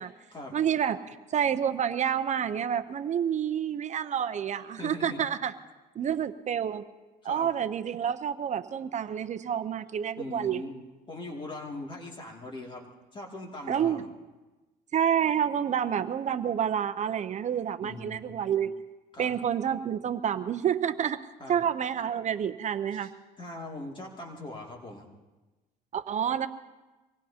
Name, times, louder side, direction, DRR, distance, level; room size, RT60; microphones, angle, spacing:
voice 1, 0.5-5.5 6.0-6.9 7.2-10.6 13.7-14.0 14.9-18.8 19.2-23.1 25.9-26.5, right 8 dB, 45° right, 11 dB, 0.7 m, -29 dB
voice 2, 4.8-5.2 7.2-7.5 10.2-10.8 11.1-12.9 13.1-14.1 17.8-18.4 19.1-19.3 21.4-21.6 22.9-23.1 23.4-25.1, left 2 dB, 30° left, -1 dB, 2.5 m, -41 dB
24.5 x 19.5 x 2.9 m, 1.2 s
cardioid pair, 110°, 17 cm